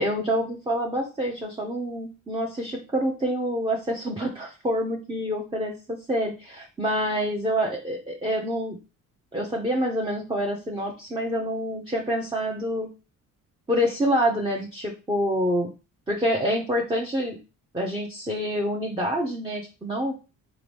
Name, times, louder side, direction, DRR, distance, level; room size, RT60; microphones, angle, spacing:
voice 1, 0.0-8.8 9.3-12.9 13.7-15.7 16.1-17.4 17.7-20.1, equal, 15° right, -1 dB, 0.9 m, -27 dB
3.8 x 3.6 x 3.4 m, 0.31 s
cardioid pair, 90°, 34 cm